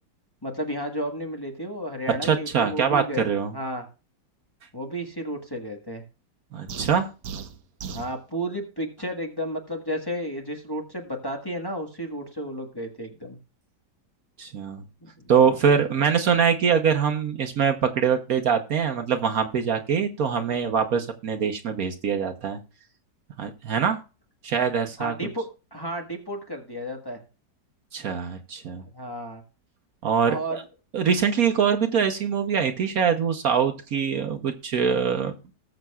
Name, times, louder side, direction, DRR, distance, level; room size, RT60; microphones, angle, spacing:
voice 1, 0.4-3.3 3.5-3.8 4.7-6.0 7.9-13.4 15.0-15.6 25.0-27.2 28.9-29.4 30.2-30.6, equal, 15° left, 1 dB, 1.4 m, -32 dB
voice 2, 2.2-3.5 6.5-7.1 14.4-14.8 15.3-22.6 23.4-24.0 24.4-25.1 27.9-28.8 30.0-30.4 30.9-35.3, right 7 dB, 60° right, 6 dB, 1.3 m, -23 dB
sound 1, 6.7-8.1, right 6 dB, 75° right, 1.5 m, -36 dB
20.0 x 6.6 x 2.3 m, 0.32 s
omnidirectional pair, 1.8 m